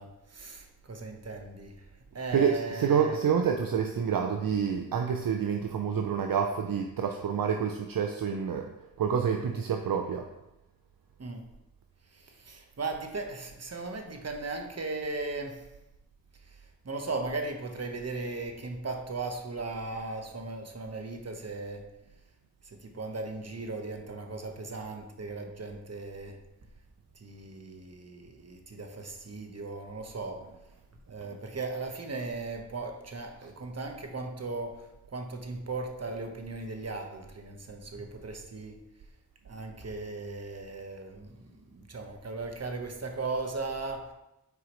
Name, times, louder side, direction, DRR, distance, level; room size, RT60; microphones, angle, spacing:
voice 1, 0.0-3.2 11.2-11.4 12.1-15.6 16.4-21.9 22.6-26.4 27.1-30.5 31.1-38.8 39.4-44.1, right 3 dB, 40° right, 4 dB, 1.2 m, -37 dB
voice 2, 2.3-8.7 9.0-10.3, right 7 dB, 65° right, 4 dB, 0.6 m, -28 dB
8.2 x 4.8 x 3.1 m, 0.91 s
cardioid pair, 45°, 37 cm